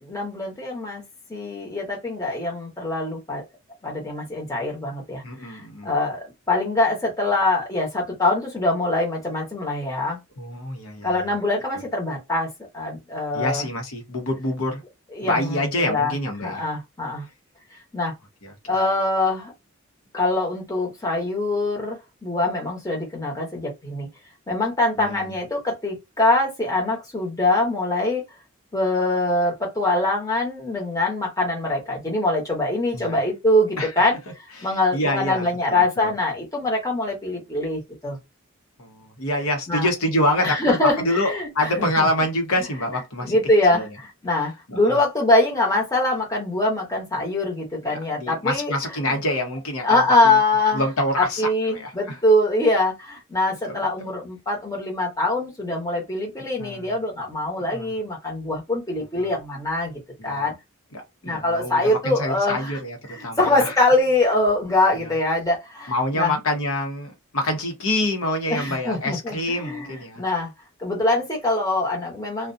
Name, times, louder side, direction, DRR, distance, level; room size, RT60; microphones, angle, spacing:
voice 1, 0.0-1.0 1.3-3.4 3.8-10.2 11.0-12.5 12.7-13.7 15.1-16.1 16.4-17.2 17.9-18.1 18.7-19.5 20.1-24.1 24.5-28.2 28.7-34.2 34.6-38.2 39.7-39.9 40.4-42.1 43.2-48.7 49.8-50.8 51.2-60.5 61.2-62.8 63.1-66.4 68.5-70.5 70.8-72.5, left 2 dB, 15° left, 0.9 m, -23 dB
voice 2, 5.2-5.9 10.4-11.1 13.3-14.8 15.2-16.7 18.4-18.5 25.0-25.3 32.9-33.2 33.8-33.9 34.6-36.1 38.8-43.4 43.7-43.9 44.7-45.0 47.9-50.4 50.7-52.2 53.6-54.1 56.6-56.9 57.7-57.9 60.2-60.4 60.9-63.7 64.9-65.1 65.9-70.2, left 1 dB, 85° left, 0.8 m, -26 dB
2.4 x 2.2 x 2.5 m
head